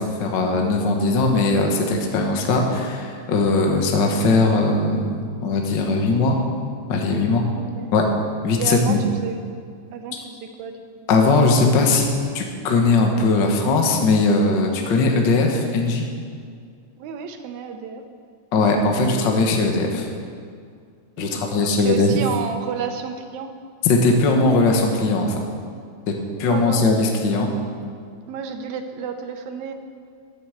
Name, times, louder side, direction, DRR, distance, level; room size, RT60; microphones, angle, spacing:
voice 1, 0.0-6.4 6.9-7.4 7.9-8.0 8.4-9.0 11.1-12.1 12.3-16.0 18.5-20.1 21.2-22.2 23.8-25.3 26.1-26.2 26.4-27.5, left 3 dB, 50° left, 2 dB, 1.5 m, -19 dB
voice 2, 7.5-7.9 8.6-9.4 9.9-10.8 17.0-18.0 21.2-23.5 26.5-26.8 28.3-29.7, right 6 dB, 80° right, 6 dB, 2.2 m, -31 dB
11.0 x 7.8 x 7.9 m, 2.2 s
omnidirectional pair, 3.3 m